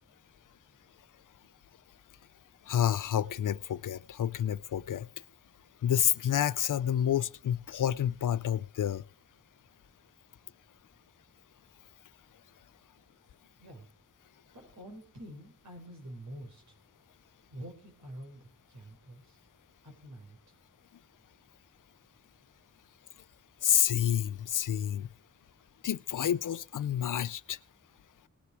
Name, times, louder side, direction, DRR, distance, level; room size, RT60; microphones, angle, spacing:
voice 1, 2.7-5.1 5.8-9.0 23.6-25.1 25.8-27.6, left 10 dB, 80° left, 0.6 m, -29 dB
voice 2, 14.5-16.8 17.5-19.4 19.8-20.6, right 1 dB, 65° right, 4.3 m, -47 dB
19.0 x 9.8 x 4.8 m
wide cardioid pair, 110°, 31 cm